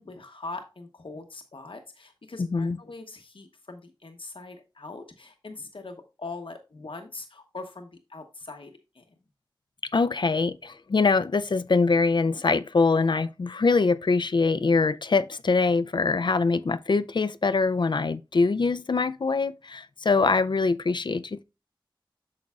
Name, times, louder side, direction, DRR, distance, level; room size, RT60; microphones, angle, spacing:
voice 1, 0.0-9.2, left 3 dB, 90° left, 0.9 m, -42 dB
voice 2, 2.4-2.8 9.9-21.4, left 4 dB, 65° left, 0.3 m, -23 dB
8.6 x 6.3 x 2.4 m
wide cardioid pair, 55°, 9 cm